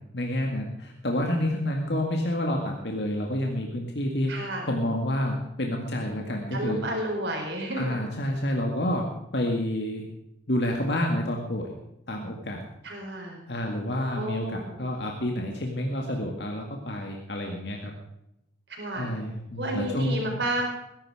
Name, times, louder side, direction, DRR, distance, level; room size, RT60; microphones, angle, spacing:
voice 1, 0.1-4.3 4.7-6.8 7.7-10.0 10.5-11.7 12.1-12.6 13.5-17.9 19.0-20.3, left 1 dB, 65° left, 1 dB, 2.0 m, -29 dB
voice 2, 4.3-4.6 6.5-8.0 12.8-13.4 14.2-14.8 18.7-19.1 19.6-20.6, right 1 dB, 70° right, 1 dB, 4.3 m, -31 dB
20.5 x 11.5 x 4.9 m, 0.84 s
head